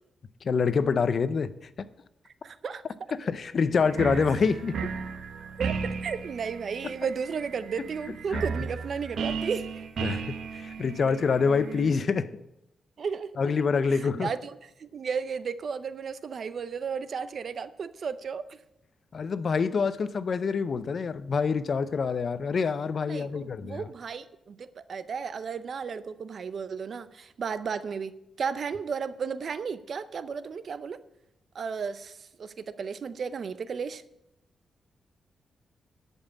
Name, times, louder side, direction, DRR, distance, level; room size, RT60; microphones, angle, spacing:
voice 1, 0.4-1.5 1.8-1.9 3.1-4.8 8.3-8.4 10.0-10.2 10.5-12.3 13.4-14.3 19.1-23.9, left 5 dB, 55° left, 0.6 m, -26 dB
voice 2, 2.4-2.8 5.6-5.7 6.0-9.8 13.0-13.6 13.9-18.6 23.1-31.0 31.5-34.0, right 6 dB, 55° right, 0.6 m, -34 dB
sound 1, 3.8-11.9, right 5 dB, 75° right, 1.1 m, -35 dB
11.0 x 5.4 x 8.4 m
cardioid pair, 95°, 0 cm